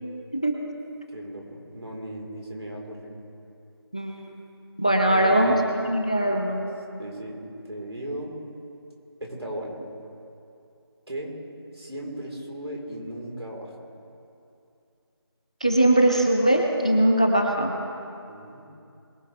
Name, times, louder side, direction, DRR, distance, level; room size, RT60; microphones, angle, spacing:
voice 1, 1.1-3.1 5.0-5.6 6.1-6.2 7.0-7.4 7.7-8.3 9.2-9.8 11.1-11.4 11.7-13.7 18.3-18.7, right 1 dB, 80° right, -1 dB, 3.9 m, -36 dB
voice 2, 4.8-5.5 5.9-6.6 15.6-17.7, right 1 dB, 15° left, 3 dB, 0.5 m, -20 dB
22.0 x 11.5 x 3.3 m, 2.6 s
figure-of-eight pair, 175°, 14 cm